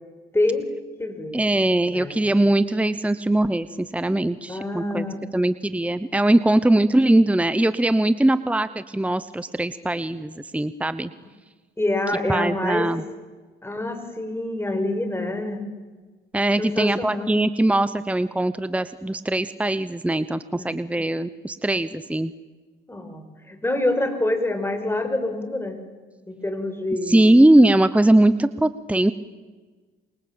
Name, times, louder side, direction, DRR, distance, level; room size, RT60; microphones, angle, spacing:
voice 1, 0.3-0.7 1.0-1.4 1.9-2.2 4.5-5.2 11.8-12.9 13.6-15.6 16.6-17.3 20.5-20.8 22.9-25.8 26.3-27.4, left 2 dB, 10° left, 7 dB, 5.4 m, -26 dB
voice 2, 1.3-5.0 5.3-11.1 12.3-13.0 16.3-22.3 27.1-29.1, right 1 dB, 5° right, 13 dB, 0.9 m, -20 dB
27.5 x 24.0 x 8.9 m, 1.4 s
cardioid pair, 90°, 20 cm